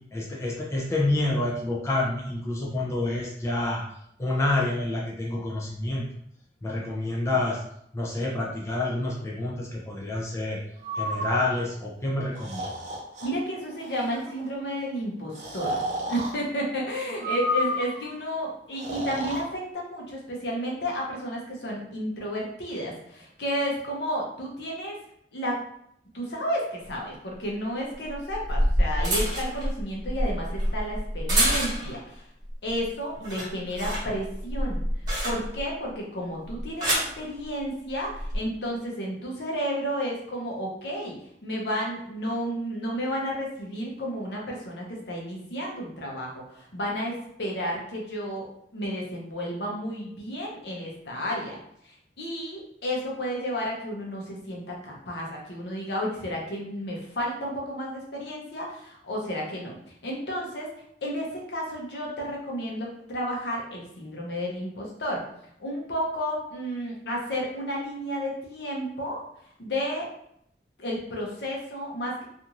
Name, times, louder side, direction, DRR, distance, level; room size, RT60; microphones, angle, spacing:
voice 1, 0.1-3.8 4.2-6.1 6.6-7.6 7.9-10.6 10.9-12.7, left 2 dB, 15° left, -3 dB, 0.4 m, -28 dB
Breathing, 10.8-11.3 12.3-13.3 13.8-14.2 15.3-16.3 17.2-18.0 18.7-19.4, equal, 40° right, 0.6 m, -31 dB
voice 2, 13.2-25.0 25.3-25.6 26.1-32.2 32.6-34.8 35.2-48.5 48.7-51.6 51.8-59.8 60.0-60.7 61.0-65.2 65.6-69.2 69.6-70.1 70.8-72.2, equal, 65° left, -2 dB, 0.7 m, -32 dB
sound 1, 26.8-26.9 28.1-32.1 32.5-32.8 33.1-35.7 36.5-37.1 38.0-38.4, equal, 20° right, 1.1 m, -27 dB
2.5 x 2.5 x 2.9 m, 0.73 s
head